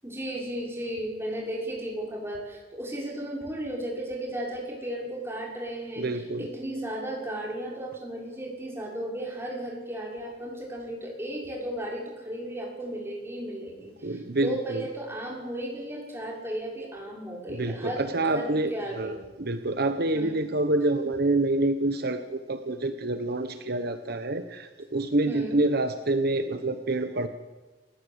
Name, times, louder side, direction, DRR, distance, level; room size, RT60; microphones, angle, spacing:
voice 1, 0.0-19.1 20.1-20.5 25.2-25.6, right 1 dB, 15° right, -1 dB, 6.2 m, -35 dB
voice 2, 6.0-6.5 14.0-14.8 17.5-27.3, right 2 dB, 60° right, 9 dB, 1.1 m, -27 dB
28.5 x 15.0 x 8.1 m, 1.2 s
head